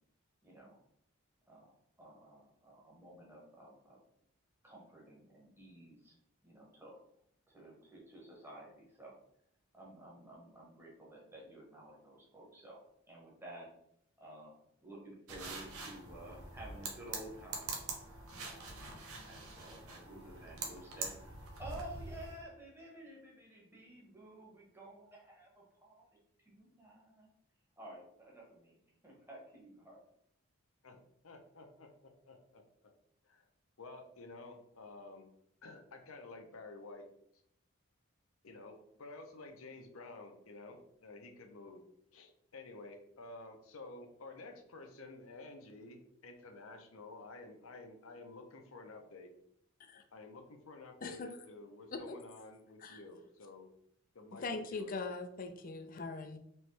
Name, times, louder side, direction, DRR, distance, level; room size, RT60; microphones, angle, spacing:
voice 1, 0.4-0.8 1.5-1.7 2.0-4.0 4.6-6.1 6.4-7.0 7.5-9.2 9.7-12.8 13.1-13.7 14.2-17.7 18.1-18.2 18.4-19.0 19.2-26.1 26.4-27.3 27.8-30.0, right 1 dB, 10° right, -3 dB, 1.1 m, -52 dB
sound 1, 15.3-22.4, right 3 dB, 80° right, 0.9 m, -45 dB
voice 2, 30.8-32.9 33.2-33.5 33.8-35.3 35.6-37.1 38.4-41.8 42.1-49.3 50.1-53.7 54.1-54.9, left 3 dB, 70° left, 4 dB, 0.7 m, -51 dB
voice 3, 54.3-56.4, left 3 dB, 40° left, 7 dB, 0.4 m, -41 dB
4.4 x 3.1 x 3.2 m, 0.72 s
head